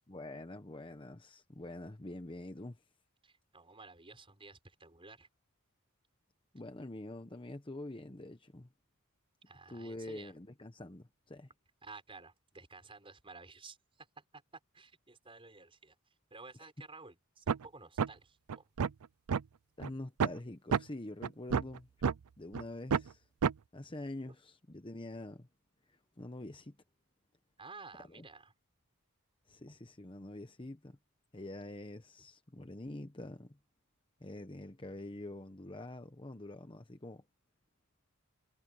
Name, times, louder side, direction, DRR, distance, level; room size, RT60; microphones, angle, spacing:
voice 1, 0.1-2.8 6.5-8.7 9.7-11.5 19.8-21.9 22.4-23.3 23.7-25.5 25.9-26.8 28.0-28.2 29.5-31.0 31.3-33.6 34.2-37.2, left 1 dB, 25° left, 1.0 m, -46 dB
voice 2, 3.2-5.3 9.5-10.3 11.8-14.4 14.7-15.9 16.3-18.7 27.6-28.5, right 3 dB, 25° right, 6.1 m, -53 dB
sound 1, 17.5-17.6 18.0-18.1 18.5-19.4 19.8-19.9 20.2-20.4 20.7-20.8 21.2-22.2 22.5-22.6 22.9-23.1 23.4-23.5, right 6 dB, 90° right, 0.5 m, -29 dB
head